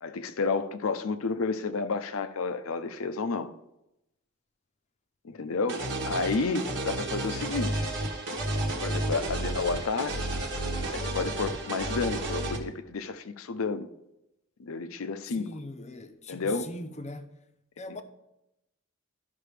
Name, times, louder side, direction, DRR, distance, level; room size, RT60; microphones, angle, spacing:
voice 1, 0.0-3.5 5.2-7.9 8.8-10.1 10.9-13.9 14.6-15.5 16.3-16.7, left 4 dB, 75° left, 0.6 m, -31 dB
voice 2, 5.3-5.7 15.3-17.4 17.8-18.0, left 2 dB, 35° left, 0.7 m, -41 dB
sound 1, 5.7-12.6, right 1 dB, 60° right, 1.2 m, -31 dB
12.5 x 5.8 x 3.3 m
head